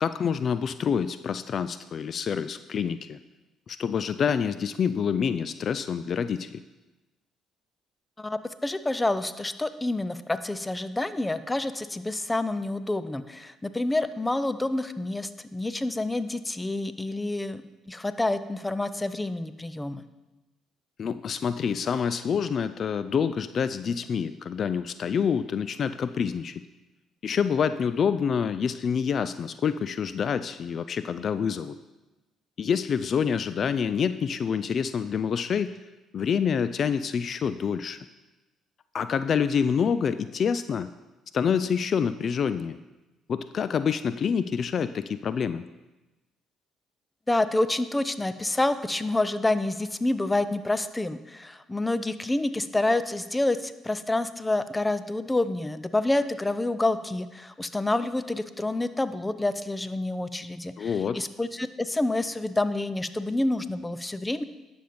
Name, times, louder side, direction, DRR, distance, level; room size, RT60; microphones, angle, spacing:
voice 1, 0.0-3.2 3.7-6.6 21.0-26.6 27.2-31.8 32.6-35.8 36.1-38.0 38.9-40.9 41.3-42.8 43.3-45.6 60.8-61.2, left 7 dB, 55° left, 12 dB, 0.4 m, -27 dB
voice 2, 8.2-17.6 17.9-20.0 47.3-64.4, left 2 dB, 15° left, 13 dB, 0.6 m, -28 dB
10.0 x 6.9 x 5.1 m, 1.1 s
supercardioid pair, 70°, 0 cm